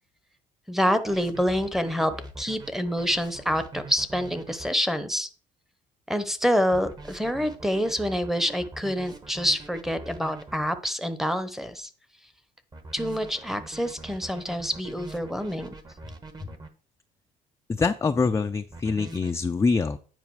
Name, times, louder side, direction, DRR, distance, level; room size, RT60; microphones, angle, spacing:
voice 1, 0.7-5.3 6.1-11.9 12.9-15.7, equal, ahead, 9 dB, 0.8 m, -27 dB
sound 1, 1.1-4.7 6.7-10.7 12.7-16.7 18.7-19.4, right 2 dB, 25° right, 1.1 m, -43 dB
voice 2, 17.7-20.0, left 4 dB, 15° left, 6 dB, 0.4 m, -24 dB
9.2 x 4.8 x 4.7 m, 0.40 s
cardioid pair, 110°, 17 cm